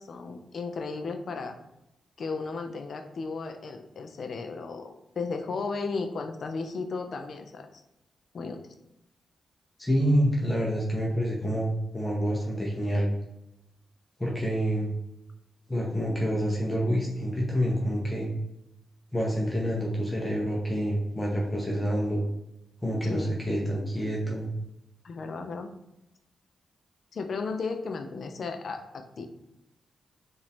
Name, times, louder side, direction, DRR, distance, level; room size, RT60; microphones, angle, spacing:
voice 1, 0.0-1.5 2.2-7.7 8.3-8.6 23.0-23.4 25.0-25.7 27.1-29.3, left 4 dB, 65° left, 6 dB, 0.5 m, -35 dB
voice 2, 9.8-13.1 14.2-14.9 15.7-18.3 19.1-22.2 22.8-24.5, equal, 20° left, -3 dB, 1.0 m, -27 dB
5.0 x 2.7 x 3.6 m, 0.89 s
cardioid pair, 60°, 0 cm